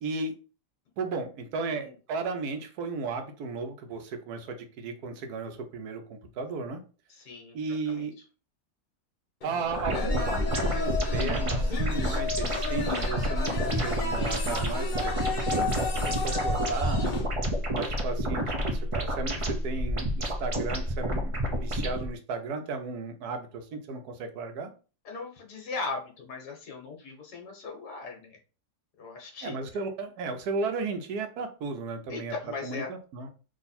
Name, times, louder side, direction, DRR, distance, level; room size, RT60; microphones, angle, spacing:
voice 1, 0.0-0.3 1.0-6.8 7.5-8.1 9.4-15.8 16.1-17.0 17.7-24.7 29.4-32.3 32.6-33.3, right 4 dB, 70° right, 6 dB, 1.2 m, -35 dB
voice 2, 7.1-7.6 7.9-8.1 25.1-28.4 29.0-29.5 32.1-32.9, left 4 dB, 70° left, 1 dB, 1.7 m, -38 dB
sound 1, 9.4-17.3, left 4 dB, 50° left, 0.5 m, -34 dB
sound 2, 9.7-22.1, equal, 50° right, 0.3 m, -29 dB
3.7 x 2.8 x 4.1 m, 0.35 s
omnidirectional pair, 1.8 m